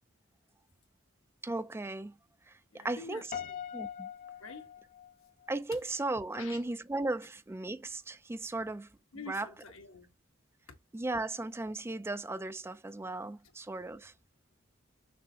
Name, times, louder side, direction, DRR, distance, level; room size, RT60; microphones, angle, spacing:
voice 1, 1.4-2.1 2.7-3.2 3.7-4.1 5.5-8.9 9.3-9.5 10.9-14.1, right 2 dB, 10° right, 0.4 m, -36 dB
voice 2, 2.7-3.6 4.4-4.7 6.3-6.6 9.1-10.1, left 3 dB, 80° left, 1.4 m, -47 dB
Piano, 3.3-5.6, left 8 dB, 45° left, 0.9 m, -42 dB
6.2 x 2.9 x 2.8 m
head